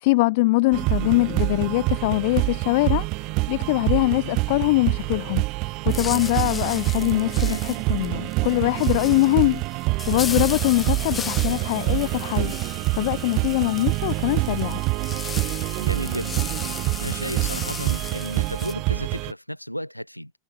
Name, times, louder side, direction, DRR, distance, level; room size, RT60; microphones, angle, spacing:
voice 1, 0.0-5.4 5.8-9.6 10.1-12.6 12.9-14.8, left 23 dB, 50° left, 0.5 m, -22 dB
sound 1, 0.7-19.3, right 25 dB, 40° right, 0.8 m, -26 dB
sound 2, 5.9-18.7, left 6 dB, 20° left, 1.2 m, -36 dB
voice 2, 15.8-16.5 17.0-20.3, equal, 90° left, 2.0 m, -33 dB
figure-of-eight pair, 90°, 0 cm